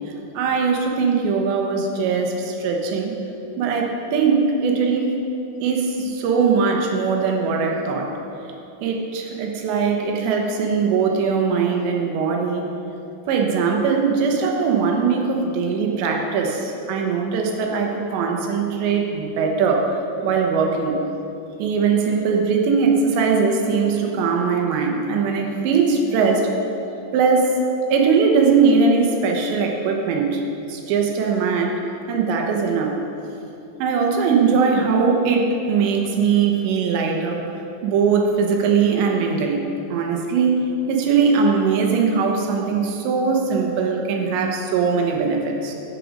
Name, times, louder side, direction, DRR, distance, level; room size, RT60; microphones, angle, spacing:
voice 1, 0.3-3.1 3.6-5.1 5.6-8.1 8.8-12.7 13.3-19.9 20.2-21.0 21.6-26.5 27.1-27.6 27.9-30.4 30.7-31.8 32.1-33.0 33.8-37.4 37.8-39.6 39.9-40.6 40.9-45.7, right 5 dB, 75° right, 2 dB, 3.1 m, -20 dB
16.0 x 6.7 x 5.1 m, 2.8 s
omnidirectional pair, 5.5 m